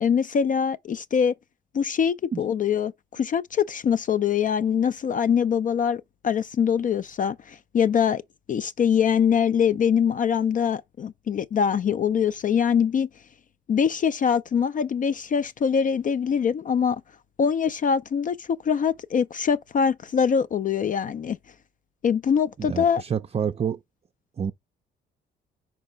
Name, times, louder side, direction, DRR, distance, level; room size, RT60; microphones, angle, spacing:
voice 1, 0.0-1.3 1.7-8.2 8.5-13.1 13.7-17.0 17.4-21.4 22.0-23.0, left 7 dB, 40° left, 0.4 m, -23 dB
voice 2, 22.6-23.8 24.4-24.5, right 7 dB, 30° right, 0.5 m, -28 dB
4.9 x 4.4 x 5.5 m
cardioid pair, 90°, 20 cm